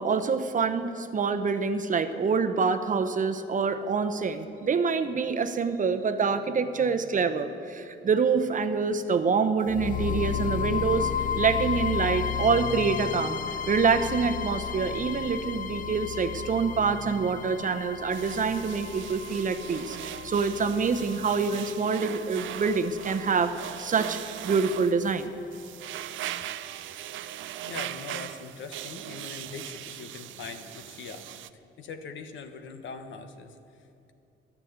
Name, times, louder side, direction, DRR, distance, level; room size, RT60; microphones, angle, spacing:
voice 1, 0.0-11.1 11.4-20.0 20.2-24.2 24.4-25.3, right 5 dB, 40° right, 9 dB, 0.8 m, -26 dB
sound 1, 9.7-23.7, left 8 dB, 40° left, 0.5 m, -33 dB
sound 2, 18.1-31.5, right 12 dB, 75° right, 0.5 m, -39 dB
voice 2, 27.6-31.3 31.8-34.1, left 5 dB, 70° left, 8 dB, 1.1 m, -42 dB
11.0 x 10.0 x 8.0 m, 2.6 s
cardioid pair, 90°, 20 cm